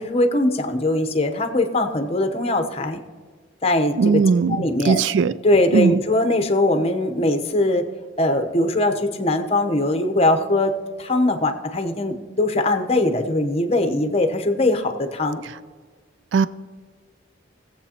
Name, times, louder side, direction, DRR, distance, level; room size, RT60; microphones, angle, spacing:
voice 1, 0.0-3.0 3.6-4.2 4.5-5.0 5.4-7.9 8.2-10.7 11.0-15.4, left 1 dB, 30° left, 0.8 m, -21 dB
voice 2, 4.0-5.3 5.7-6.0 16.3-16.5, right 5 dB, 70° right, 0.3 m, -18 dB
20.5 x 7.7 x 2.9 m
head